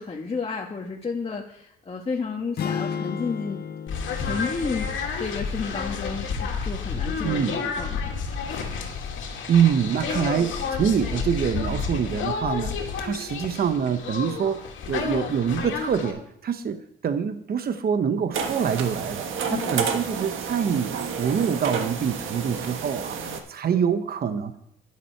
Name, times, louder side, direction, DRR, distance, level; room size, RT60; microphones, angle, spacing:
voice 1, 0.0-3.6 3.9-4.9 5.2-8.1 19.5-19.8, left 4 dB, 30° left, 0 dB, 1.4 m, -31 dB
sound 1, 2.6-6.7, left 7 dB, 50° left, 0.6 m, -35 dB
sound 2, 3.9-16.1, left 5 dB, 80° left, 2.5 m, -30 dB
voice 2, 7.2-7.6 9.5-12.7 13.0-14.6 14.9-24.6, right 7 dB, 50° right, 9 dB, 1.0 m, -25 dB
sound 3, 18.3-23.4, right 6 dB, 80° right, 1.6 m, -30 dB
11.0 x 10.5 x 4.5 m, 0.76 s
cardioid pair, 90°, 20 cm